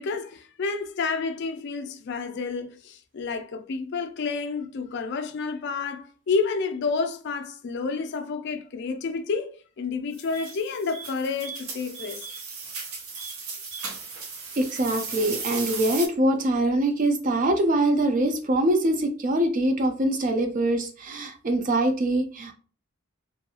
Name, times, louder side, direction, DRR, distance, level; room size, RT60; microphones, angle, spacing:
voice 1, 0.0-12.3, left 4 dB, 50° left, 0.3 m, -30 dB
sound 1, 10.1-16.1, right 4 dB, 70° right, 0.7 m, -36 dB
voice 2, 14.6-22.5, right 1 dB, 35° right, 0.4 m, -23 dB
2.6 x 2.3 x 2.7 m
head